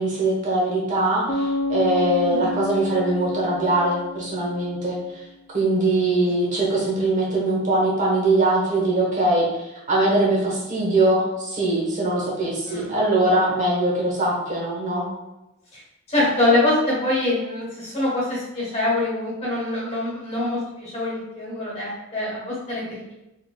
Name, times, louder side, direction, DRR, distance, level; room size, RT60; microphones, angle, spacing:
voice 1, 0.0-5.2 5.5-15.1, right 2 dB, 40° right, -4 dB, 1.0 m, -22 dB
Bass guitar, 1.3-4.9, left 2 dB, 55° left, 0.5 m, -30 dB
voice 2, 2.3-2.6 6.4-6.5 12.7-12.9 15.7-15.8 16.1-23.2, left 2 dB, 35° left, -5 dB, 1.2 m, -24 dB
3.6 x 3.2 x 2.3 m, 0.94 s
head